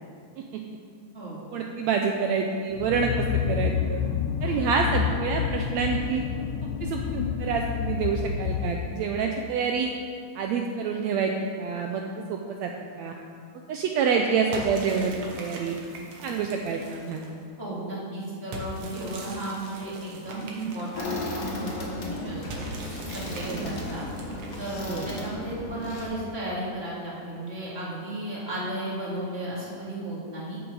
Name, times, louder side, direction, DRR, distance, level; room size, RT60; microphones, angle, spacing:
voice 1, 1.5-4.0 4.4-6.2 6.8-9.9 10.3-11.3 11.6-12.0 12.3-12.7 13.0-13.1 13.7-15.8 16.2-17.2 23.4-23.6 24.8-25.1, right 5 dB, 90° right, 2 dB, 1.5 m, -27 dB
sound 1, 2.7-9.3, left 7 dB, 80° left, 1.9 m, -29 dB
sound 2, 14.5-17.4 18.5-21.5 22.5-25.1, right 1 dB, 60° right, 2.1 m, -41 dB
voice 2, 17.6-22.7 23.1-24.0 24.6-30.6, right 1 dB, 20° right, -7 dB, 2.6 m, -34 dB
sound 3, 20.9-26.1, left 2 dB, 50° left, 1.0 m, -35 dB
13.5 x 7.1 x 4.8 m, 2.2 s
omnidirectional pair, 3.8 m